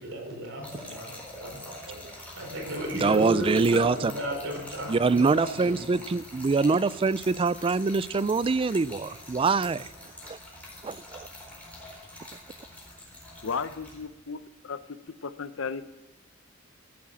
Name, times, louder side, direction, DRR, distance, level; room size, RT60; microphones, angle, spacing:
voice 1, 0.0-5.9, right 1 dB, 70° right, 4.2 m, -34 dB
Trickle dribble / Fill (with liquid), 0.6-14.0, left 1 dB, 5° left, 4.1 m, -45 dB
voice 2, 3.0-4.1 4.9-9.9 10.3-10.4 10.8-11.3, right 4 dB, 25° right, 0.3 m, -24 dB
voice 3, 13.4-15.9, left 5 dB, 75° left, 0.7 m, -35 dB
14.5 x 8.7 x 7.3 m
head